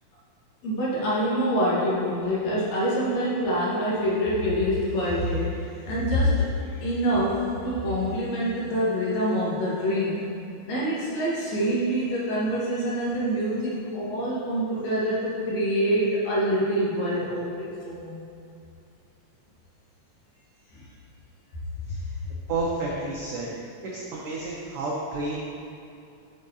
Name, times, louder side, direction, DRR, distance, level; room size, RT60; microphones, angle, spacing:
voice 1, 0.6-10.2 10.6-18.2 20.7-20.8, equal, 65° left, -7 dB, 2.6 m, -26 dB
voice 2, 22.5-23.5 23.8-25.4, right 2 dB, 75° right, -4 dB, 1.3 m, -30 dB
8.1 x 6.4 x 2.7 m, 2.6 s
omnidirectional pair, 3.4 m